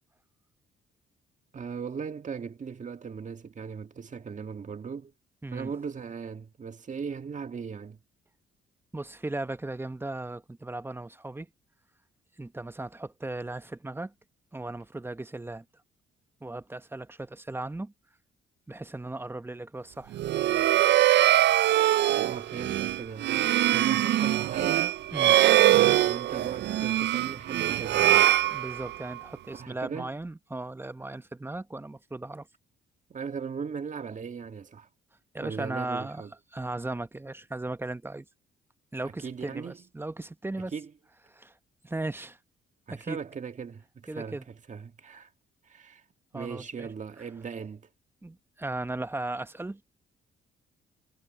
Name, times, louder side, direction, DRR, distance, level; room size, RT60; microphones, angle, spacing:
voice 1, 1.5-5.1 5.5-8.0 22.2-24.9 25.8-28.3 29.5-30.1 33.1-34.9 35.4-36.3 39.2-39.8 40.7-40.9 42.9-45.3 45.7-46.0 46.3-47.9, right 6 dB, 40° right, 1.9 m, -38 dB
voice 2, 8.9-11.5 12.4-14.1 14.5-15.6 16.4-17.9 18.7-20.2 25.1-25.4 28.5-32.5 35.3-36.2 36.5-38.2 38.9-40.7 41.3-41.5 41.8-42.4 42.9-43.2 44.1-44.4 46.3-46.9 48.2-49.8, right 2 dB, 10° right, 1.0 m, -36 dB
sound 1, 20.1-29.2, right 13 dB, 60° right, 0.4 m, -23 dB
cardioid pair, 90°, 20 cm